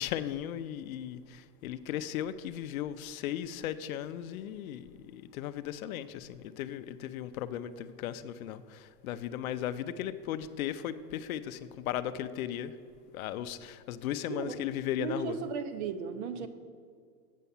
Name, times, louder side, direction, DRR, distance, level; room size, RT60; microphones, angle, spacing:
voice 1, 0.0-12.7 13.1-15.4, left 11 dB, 60° left, 11 dB, 0.6 m, -36 dB
voice 2, 15.0-16.5, right 6 dB, 45° right, 9 dB, 0.7 m, -35 dB
8.3 x 5.6 x 6.9 m, 2.1 s
supercardioid pair, 145°, 48 cm